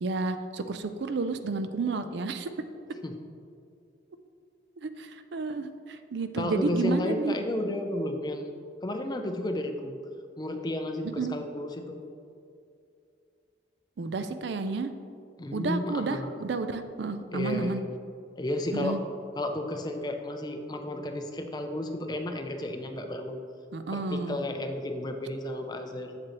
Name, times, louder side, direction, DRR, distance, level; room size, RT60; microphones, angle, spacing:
voice 1, 0.0-2.5 4.8-7.4 11.0-11.4 14.0-14.9 15.5-17.8 18.7-19.0 23.7-24.4, right 3 dB, 70° right, 10 dB, 0.4 m, -31 dB
voice 2, 6.4-8.5 8.8-10.0 10.4-12.0 15.4-16.3 17.3-17.8 18.4-19.0 19.4-23.4 23.9-26.2, left 1 dB, 20° left, 5 dB, 0.5 m, -32 dB
7.6 x 7.5 x 3.0 m, 2.5 s
head